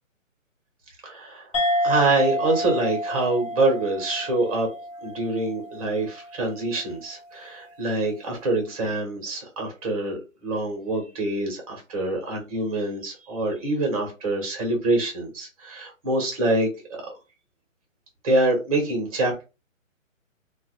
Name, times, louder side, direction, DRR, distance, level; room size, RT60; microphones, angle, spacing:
voice 1, 1.0-1.5 1.8-4.7 5.0-17.0 18.2-19.5, right 2 dB, 25° right, 1.2 m, -25 dB
sound 1, 1.5-6.5, equal, 25° left, 0.4 m, -29 dB
3.3 x 2.3 x 3.1 m
hypercardioid pair, 155°, 40 cm